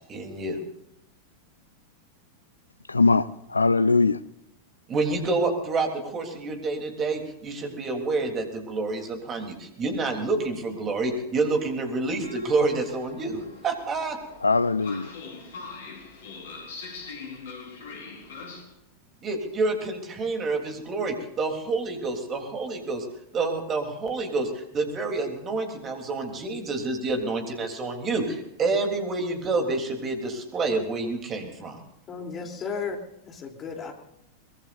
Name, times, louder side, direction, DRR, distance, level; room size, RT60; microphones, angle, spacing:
voice 1, 0.1-0.6 4.9-14.2 19.2-23.1 23.3-31.8, right 3 dB, 25° right, 3.4 m, -28 dB
voice 2, 2.9-4.2 14.4-15.1, left 3 dB, 80° left, 0.5 m, -21 dB
Train, 12.2-18.6, left 4 dB, 60° left, 4.4 m, -42 dB
voice 3, 32.1-33.0 33.2-33.9, left 5 dB, 25° left, 3.4 m, -34 dB
23.0 x 21.5 x 2.6 m
figure-of-eight pair, 90°, 0 cm